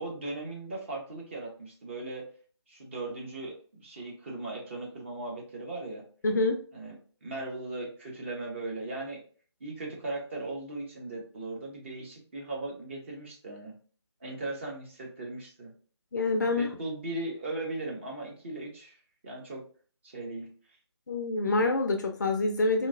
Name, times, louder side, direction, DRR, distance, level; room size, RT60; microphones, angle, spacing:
voice 1, 0.0-2.2 2.7-6.0 6.7-7.0 7.2-9.2 9.6-13.7 14.2-15.7 16.4-19.0 19.2-19.6 20.0-20.5, right 2 dB, 25° right, -1 dB, 0.7 m, -38 dB
voice 2, 6.2-6.6 16.1-16.7 21.1-22.9, left 2 dB, 40° left, 5 dB, 0.4 m, -26 dB
2.9 x 2.6 x 2.5 m, 0.42 s
figure-of-eight pair, 160°, 15 cm